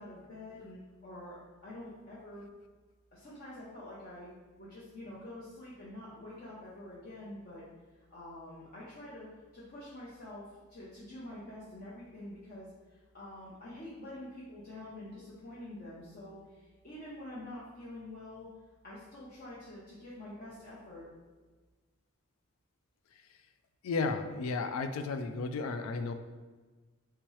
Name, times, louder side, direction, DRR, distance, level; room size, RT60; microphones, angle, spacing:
voice 1, 0.0-2.5 3.1-4.3 4.6-7.6 8.1-9.3 9.5-18.5 18.8-21.1, left 1 dB, 45° left, -9 dB, 0.7 m, -47 dB
voice 2, 23.8-26.1, left 4 dB, 90° left, 8 dB, 0.3 m, -33 dB
3.5 x 2.9 x 3.1 m, 1.3 s
head